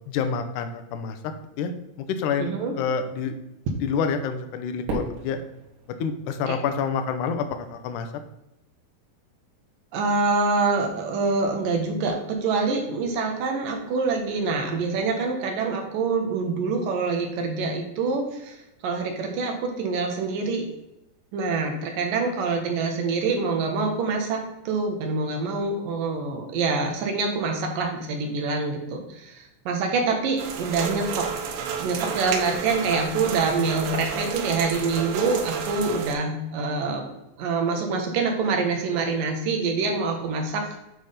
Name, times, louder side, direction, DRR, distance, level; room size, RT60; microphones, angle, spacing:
voice 1, 0.1-1.2 1.6-1.7 2.0-3.3 3.8-5.4 6.0-8.1, left 6 dB, 75° left, 7 dB, 1.9 m, -27 dB
voice 2, 2.4-2.7 6.5-6.6 9.9-18.6 18.8-20.7 21.3-24.4 24.7-31.3 31.8-37.0 37.4-40.6, right 4 dB, 70° right, 3 dB, 2.7 m, -25 dB
Fireworks, 4.9-7.2, right 2 dB, 55° right, 3.1 m, -35 dB
sound 1, 30.4-36.1, right 7 dB, 85° right, 2.7 m, -31 dB
9.5 x 3.5 x 5.7 m, 0.90 s
omnidirectional pair, 4.2 m